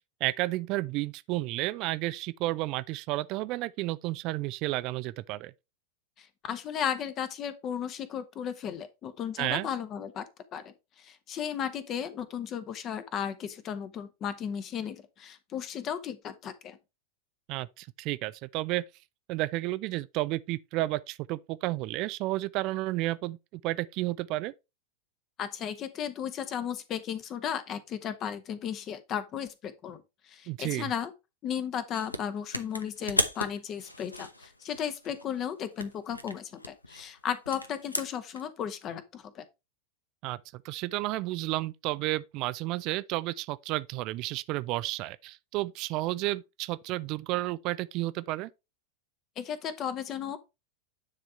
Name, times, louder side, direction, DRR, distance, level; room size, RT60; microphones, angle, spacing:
voice 1, 0.2-5.5 9.4-9.7 17.5-18.8 19.3-24.5 30.5-30.9 40.2-48.5, right 18 dB, 40° right, 0.3 m, -32 dB
voice 2, 6.2-10.2 10.5-16.8 25.4-31.1 31.4-39.4 49.4-50.4, left 8 dB, 30° left, 1.0 m, -35 dB
sound 1, 31.9-32.2 32.5-35.3 35.8-38.4, left 1 dB, 85° left, 0.7 m, -35 dB
9.6 x 3.7 x 4.4 m
figure-of-eight pair, 90°, 0 cm